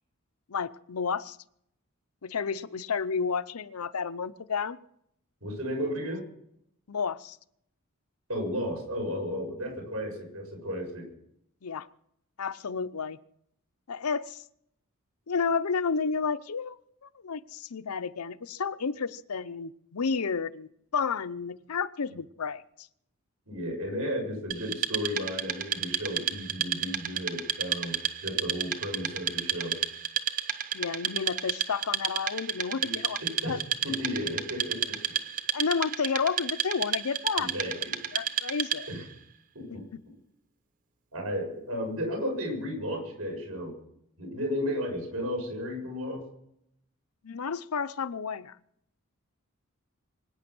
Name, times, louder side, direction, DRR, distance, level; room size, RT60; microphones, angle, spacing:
voice 1, 0.5-1.4 2.2-4.8 6.9-7.4 11.6-11.9 12.4-13.2 13.9-14.4 15.3-22.9 30.7-33.6 35.5-37.5 38.1-38.9 39.7-40.0 47.2-48.6, left 5 dB, 90° left, 14 dB, 0.7 m, -31 dB
voice 2, 5.4-6.2 8.3-11.1 23.5-28.0 28.2-29.8 32.8-32.9 33.2-33.6 33.8-35.1 37.4-37.9 38.9-39.0 39.6-39.8 41.1-43.7 44.2-46.2, equal, 85° right, 2 dB, 6.9 m, -34 dB
Wood, 24.5-39.0, right 9 dB, 40° right, 1.0 m, -32 dB
24.0 x 9.5 x 6.1 m, 0.73 s
head